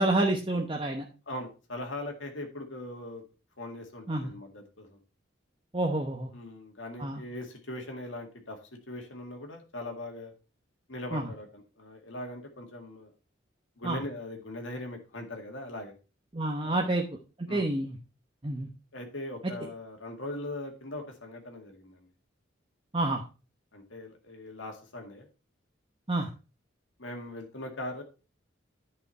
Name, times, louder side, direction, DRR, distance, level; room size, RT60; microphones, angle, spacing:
voice 1, 0.0-1.1 4.1-4.3 5.7-6.3 7.0-7.2 11.1-11.3 13.8-14.0 16.3-17.0 17.4-18.0 18.4-18.7 19.4-19.5 22.9-23.2 26.1-26.3, right 2 dB, 25° right, 1 dB, 0.9 m, -28 dB
voice 2, 1.3-3.2 3.6-5.0 6.3-8.6 8.9-10.3 10.9-13.1 13.8-15.9 16.6-16.9 17.5-17.7 18.9-22.1 23.7-25.3 27.0-28.0, left 1 dB, 75° left, 3 dB, 2.0 m, -40 dB
10.5 x 5.5 x 4.3 m, 0.33 s
head